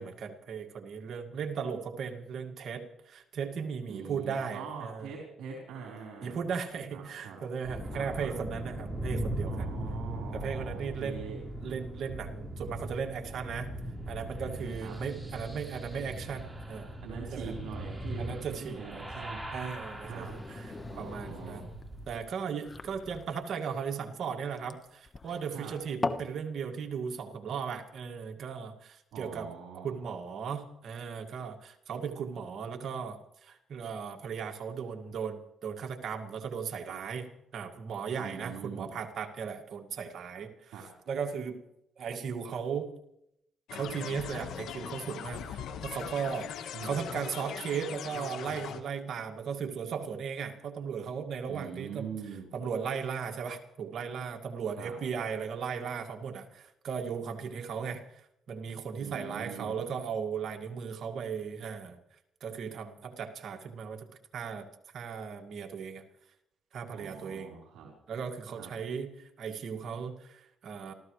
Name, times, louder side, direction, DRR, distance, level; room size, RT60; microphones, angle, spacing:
voice 1, 0.0-5.1 6.2-9.7 10.3-11.3 11.6-13.7 14.1-16.9 17.3-17.5 18.2-19.0 19.5-21.6 22.1-29.5 29.7-40.7 41.1-41.6 42.0-42.9 43.7-52.1 52.5-62.0 62.4-64.1 64.3-64.7 64.9-66.0 66.7-67.5 68.1-70.9, right 6 dB, 65° right, 4 dB, 2.1 m, -37 dB
voice 2, 3.9-6.4 6.9-7.4 7.9-8.3 9.5-11.4 14.8-14.9 17.0-19.4 20.0-20.3 20.9-21.7 25.5-25.7 29.1-30.0 38.2-38.9 40.7-40.9 46.7-47.1 51.5-52.5 54.8-54.9 59.0-59.7 66.9-67.9 68.5-68.7, right 6 dB, 85° right, -2 dB, 4.4 m, -43 dB
sound 1, 7.6-22.2, right 1 dB, 15° right, 4.9 m, -39 dB
sound 2, 19.8-26.3, left 3 dB, 25° left, 1.3 m, -40 dB
sound 3, 43.7-48.8, left 8 dB, 80° left, 1.5 m, -40 dB
27.5 x 14.0 x 3.3 m, 0.78 s
cardioid pair, 90°, 0 cm